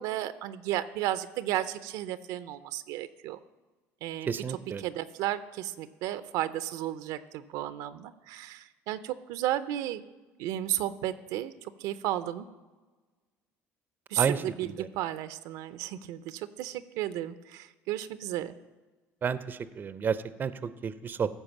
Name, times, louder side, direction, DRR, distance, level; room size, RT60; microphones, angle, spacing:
voice 1, 0.0-3.4 4.0-10.0 10.4-12.5 14.1-18.5, right 13 dB, 75° right, 13 dB, 0.5 m, -33 dB
voice 2, 4.3-4.9 14.2-14.9 19.2-21.3, right 6 dB, 30° right, 14 dB, 0.5 m, -31 dB
14.5 x 4.9 x 7.1 m, 1.2 s
supercardioid pair, 105°, 6 cm